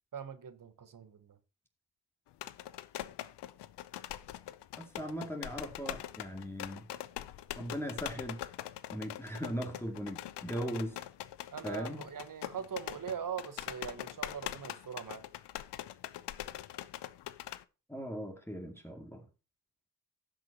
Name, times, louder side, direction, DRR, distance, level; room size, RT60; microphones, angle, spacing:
voice 1, 0.1-1.4 11.5-15.2, right 7 dB, 50° right, 1.2 m, -41 dB
sound 1, 2.3-17.6, left 13 dB, 80° left, 0.7 m, -43 dB
voice 2, 4.8-6.9 7.5-8.4 8.9-11.0 11.6-12.1 17.9-19.2, equal, 5° left, 2.3 m, -39 dB
16.0 x 6.2 x 2.9 m
supercardioid pair, 45°, 41 cm